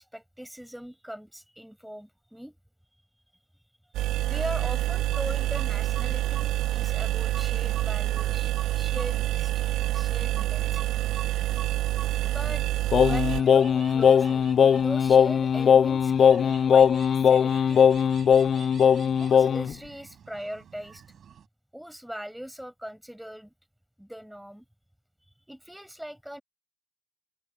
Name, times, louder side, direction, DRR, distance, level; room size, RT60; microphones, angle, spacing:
voice 1, 0.0-2.6 2.9-3.7 4.2-11.1 12.2-12.6 12.9-16.9 17.3-17.9 19.2-21.0 21.7-23.5 24.0-24.6 25.5-26.4, equal, 5° right, 6.2 m, -40 dB
sound 1, 3.9-13.4, right 15 dB, 80° right, 0.3 m, -27 dB
sound 2, 4.2-21.5, right 8 dB, 60° right, 5.4 m, -47 dB
Singing, 12.9-19.7, left 7 dB, 60° left, 0.4 m, -20 dB
open air
supercardioid pair, 55°, 0 cm